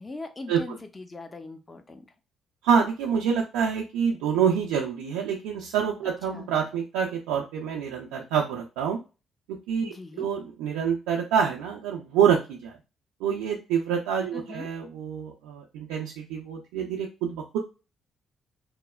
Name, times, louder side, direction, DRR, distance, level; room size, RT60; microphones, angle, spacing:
voice 1, 0.0-2.1 6.0-6.5 9.8-10.3 14.3-14.7, left 3 dB, 30° left, 6 dB, 0.6 m, -41 dB
voice 2, 2.6-9.0 9.5-12.8 13.2-17.6, right 7 dB, 90° right, -1 dB, 0.3 m, -27 dB
3.0 x 2.0 x 2.3 m, 0.30 s
supercardioid pair, 55°, 0 cm